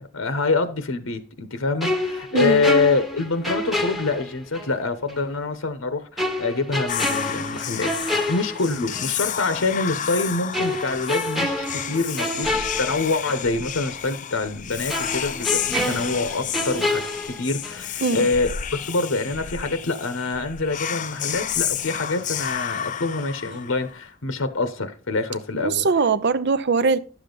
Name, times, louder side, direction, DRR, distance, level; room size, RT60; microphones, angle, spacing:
voice 1, 0.0-25.9, left 3 dB, 70° left, 0.9 m, -26 dB
sound 1, 1.8-4.8 5.1-5.2 6.2-9.1 9.5-9.7 10.5-13.5 13.8-14.0 14.9-17.9 18.2-18.4, left 1 dB, ahead, 1.0 m, -28 dB
voice 2, 2.3-2.6 18.0-18.3 25.6-27.0, right 4 dB, 55° right, 0.6 m, -21 dB
Whispering, 6.9-24.0, left 9 dB, 35° left, 0.5 m, -31 dB
11.0 x 7.0 x 3.9 m
head